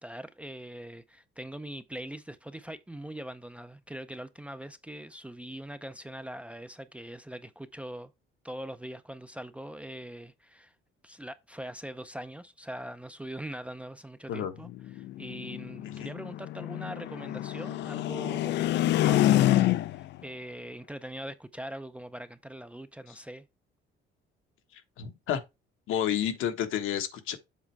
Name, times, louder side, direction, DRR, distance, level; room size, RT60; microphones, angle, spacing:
voice 1, 0.0-8.1 8.4-10.7 11.0-23.5, right 1 dB, 5° right, 0.4 m, -42 dB
sound 1, 14.6-20.1, left 14 dB, 60° left, 0.4 m, -27 dB
voice 2, 24.7-25.4 25.9-27.4, left 9 dB, 80° left, 1.3 m, -31 dB
7.5 x 4.3 x 4.5 m
cardioid pair, 145°, 21 cm